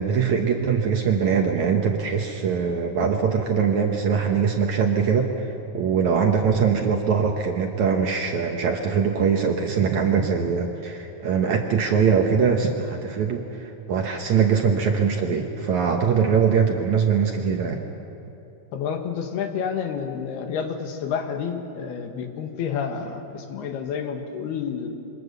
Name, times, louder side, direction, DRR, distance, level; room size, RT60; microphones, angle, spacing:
voice 1, 0.0-5.5 5.7-17.8, right 6 dB, 65° right, 3 dB, 2.0 m, -22 dB
voice 2, 18.7-25.0, left 7 dB, 75° left, 5 dB, 3.5 m, -29 dB
27.0 x 25.0 x 6.9 m, 3.0 s
omnidirectional pair, 4.6 m